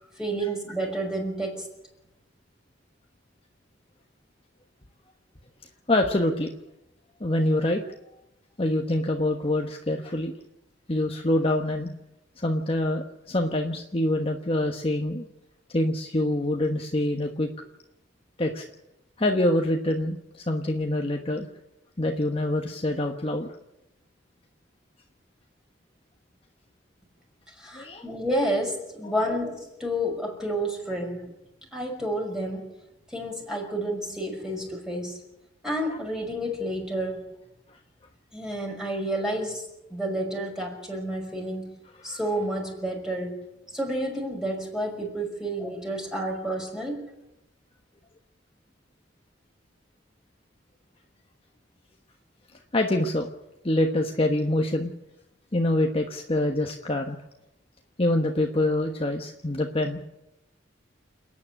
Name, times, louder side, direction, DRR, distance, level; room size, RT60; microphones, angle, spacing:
voice 1, 0.2-1.7 27.5-31.3 31.7-32.7 33.1-35.2 35.6-37.3 38.3-41.7 42.0-43.4 43.7-47.0, right 1 dB, 5° right, 0 dB, 5.8 m, -30 dB
voice 2, 5.9-6.5 7.2-7.8 8.6-10.3 10.9-11.9 12.4-15.3 15.7-17.5 18.4-18.6 19.2-21.5 22.0-23.5 27.7-28.0 29.0-29.3 35.9-36.0 42.0-42.2 52.7-53.3 53.6-54.9 55.5-57.2 58.0-60.0, left 1 dB, 30° left, 3 dB, 1.2 m, -25 dB
28.5 x 9.7 x 9.9 m, 0.89 s
head